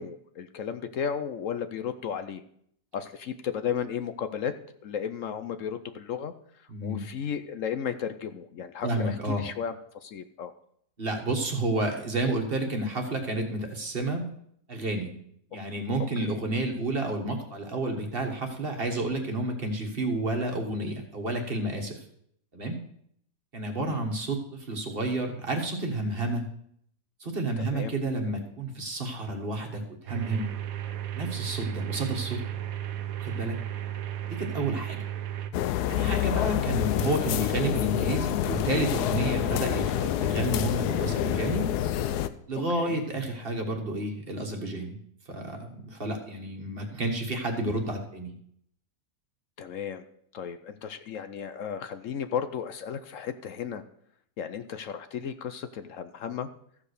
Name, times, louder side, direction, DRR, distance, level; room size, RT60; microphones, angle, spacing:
voice 1, 0.0-2.4 2.9-4.5 4.8-6.3 6.8-9.7 10.0-10.5 16.2-16.4 23.8-24.0 27.6-27.9 34.6-34.8 42.7-43.0 49.6-50.0 50.3-53.8 54.4-56.5, left 7 dB, 65° left, 10 dB, 0.9 m, -34 dB
voice 2, 6.7-7.0 8.8-9.4 11.0-14.2 14.7-15.1 15.5-21.9 22.5-22.8 23.5-26.4 27.2-30.5 31.1-32.4 33.2-33.6 34.3-35.0 35.9-41.7 42.5-45.0 45.3-48.3, right 2 dB, 35° right, 3 dB, 1.6 m, -30 dB
sound 1, 30.1-35.5, right 11 dB, 65° right, 1.1 m, -34 dB
sound 2, 35.5-42.3, left 12 dB, 80° left, 1.1 m, -28 dB
14.0 x 4.9 x 6.5 m, 0.69 s
omnidirectional pair, 1.7 m